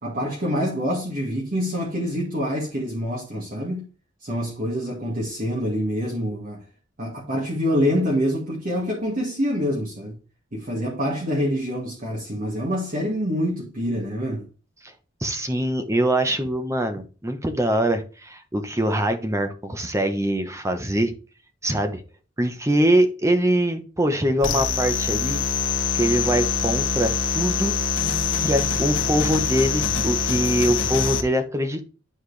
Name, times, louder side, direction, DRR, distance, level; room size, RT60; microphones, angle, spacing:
voice 1, 0.0-3.8 4.2-6.6 7.0-10.2 10.5-14.5, equal, 50° right, 1.9 m, -26 dB
voice 2, 15.2-21.1 21.6-22.0 22.4-25.4 25.9-27.8 28.4-31.8, right 1 dB, 15° right, 1.0 m, -23 dB
sound 1, 24.4-31.2, left 5 dB, 85° left, 1.1 m, -24 dB
9.6 x 4.4 x 3.3 m
head